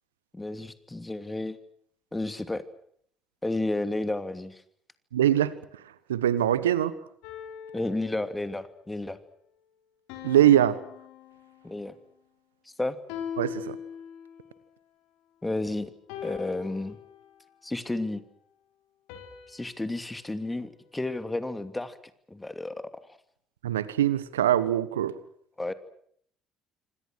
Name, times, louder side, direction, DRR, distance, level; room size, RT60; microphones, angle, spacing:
voice 1, 0.3-1.6 2.1-2.6 3.4-4.6 7.7-9.2 11.6-11.9 12.8-13.0 15.4-15.9 16.2-17.0 17.6-18.2 19.5-22.0 22.3-22.8 25.6-25.7, left 2 dB, 15° left, 10 dB, 2.8 m, -31 dB
voice 2, 5.1-5.5 6.1-6.9 10.2-10.8 13.4-13.8 23.6-25.1, right 11 dB, 85° right, 16 dB, 1.3 m, -22 dB
sound 1, 7.2-8.7 10.1-11.9 13.1-14.5 16.1-17.6 19.1-21.3, left 8 dB, 70° left, 4.3 m, -42 dB
27.5 x 25.5 x 6.4 m, 0.66 s
hypercardioid pair, 55°, 0 cm